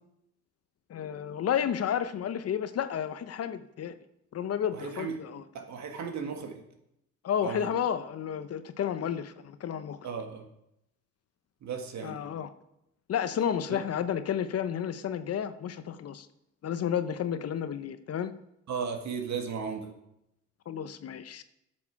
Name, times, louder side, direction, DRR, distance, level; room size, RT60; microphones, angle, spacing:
voice 1, 0.9-3.9 4.3-5.4 7.2-10.0 12.0-12.5 13.1-16.3 16.6-18.3 20.7-21.4, left 9 dB, 55° left, 12 dB, 0.7 m, -31 dB
voice 2, 4.7-5.1 5.5-6.6 7.4-7.7 10.0-10.4 11.6-12.2 13.7-13.8 18.7-19.9, right 6 dB, 65° right, 4 dB, 1.7 m, -35 dB
8.6 x 6.5 x 5.8 m, 0.81 s
cardioid pair, 90°, 30 cm